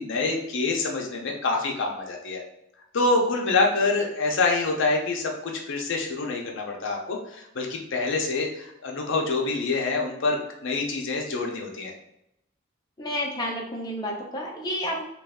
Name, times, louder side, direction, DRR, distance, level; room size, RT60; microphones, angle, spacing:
voice 1, 0.0-2.4 2.9-11.9, left 3 dB, 65° left, 1 dB, 0.6 m, -26 dB
voice 2, 13.0-15.0, equal, 20° left, -2 dB, 0.6 m, -30 dB
3.1 x 2.3 x 3.5 m, 0.80 s
head